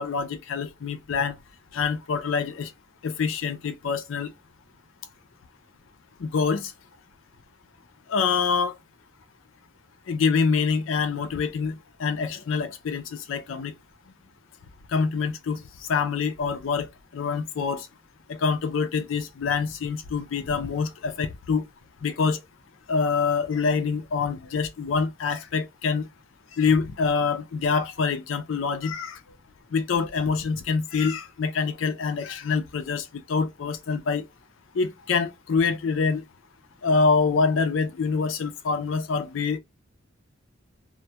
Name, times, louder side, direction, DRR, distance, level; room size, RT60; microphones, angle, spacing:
voice 1, 0.0-1.4 1.7-2.7 3.0-4.3 6.2-6.7 8.1-8.7 10.1-13.7 14.9-15.6 15.9-16.9 17.1-17.9 18.3-21.7 22.0-22.4 22.9-26.1 26.6-29.2 29.7-34.2 34.7-36.2 36.8-39.6, left 5 dB, 80° left, 0.4 m, -25 dB
2.2 x 2.1 x 2.7 m
head